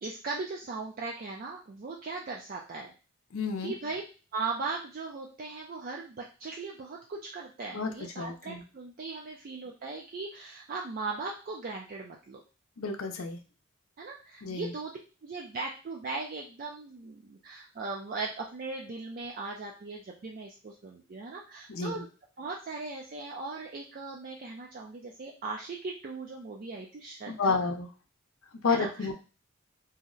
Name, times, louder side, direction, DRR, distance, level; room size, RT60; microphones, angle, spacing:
voice 1, 0.0-2.9 3.6-4.0 4.3-12.4 14.0-14.9 15.2-22.1 22.4-27.6 28.7-29.1, right 3 dB, 45° right, -1 dB, 0.4 m, -38 dB
voice 2, 3.3-3.7 7.7-7.9 8.2-8.6 12.8-13.4 14.4-14.7 21.7-22.0 27.3-27.9 28.6-29.1, left 4 dB, 85° left, 6 dB, 0.5 m, -30 dB
2.7 x 2.1 x 3.7 m, 0.34 s
head